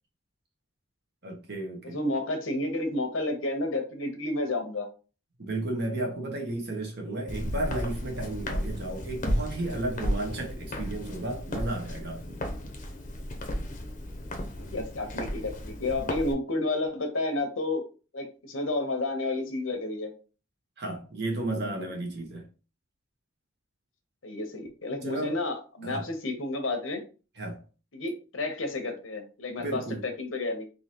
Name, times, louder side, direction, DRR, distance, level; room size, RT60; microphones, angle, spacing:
voice 1, 1.2-2.0 5.4-12.4 20.8-22.5 25.0-25.4 25.8-26.1 27.4-27.6 29.6-30.0, right 2 dB, 55° right, 1.3 m, -33 dB
voice 2, 1.8-4.9 14.6-17.8 18.1-20.1 21.4-21.7 24.2-27.0 27.9-29.8 30.2-30.6, left 2 dB, 90° left, 1.0 m, -31 dB
Walk footsteps, 7.3-16.3, equal, 40° left, 0.7 m, -34 dB
3.8 x 2.8 x 3.0 m
head